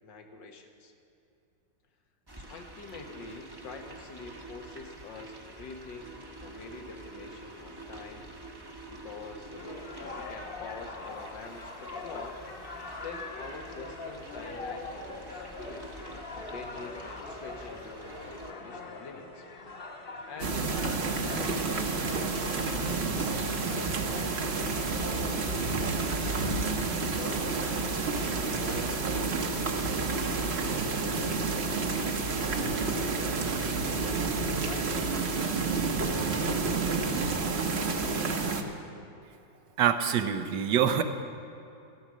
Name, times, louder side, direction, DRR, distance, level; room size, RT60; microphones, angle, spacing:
voice 1, 0.0-0.9 2.4-6.1 6.4-8.3 8.9-12.4 13.0-15.9 16.3-19.5 20.2-22.4 22.6-26.5 27.1-29.1 29.7-31.5 31.9-34.3 34.6-34.9, left 4 dB, 85° left, 4 dB, 2.0 m, -46 dB
sound 1, 2.3-18.5, right 2 dB, 20° right, 0.8 m, -47 dB
sound 2, 9.6-28.6, left 2 dB, 35° left, 1.1 m, -43 dB
sound 3, 20.4-38.6, right 4 dB, 45° right, 1.1 m, -30 dB
voice 2, 39.8-41.0, right 8 dB, 80° right, 9 dB, 1.5 m, -25 dB
14.0 x 13.0 x 6.2 m, 2.8 s
omnidirectional pair, 1.9 m